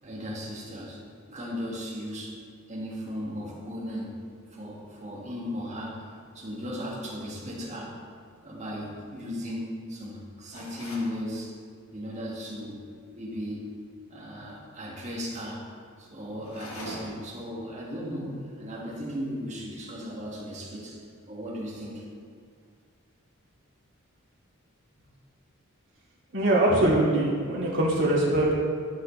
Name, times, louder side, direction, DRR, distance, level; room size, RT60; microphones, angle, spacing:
voice 1, 0.0-1.0 1.3-2.4 2.7-4.2 4.5-6.1 6.3-8.0 8.4-11.6 11.9-12.8 13.2-13.7 14.1-15.7 16.0-21.0 21.3-22.0, equal, 35° right, -5 dB, 1.7 m, -36 dB
sound 1, 10.5-11.2 16.4-17.3, equal, 75° left, 1.5 m, -41 dB
voice 2, 26.3-28.5, right 1 dB, 65° right, -7 dB, 2.3 m, -22 dB
11.5 x 6.1 x 3.2 m, 2.1 s
head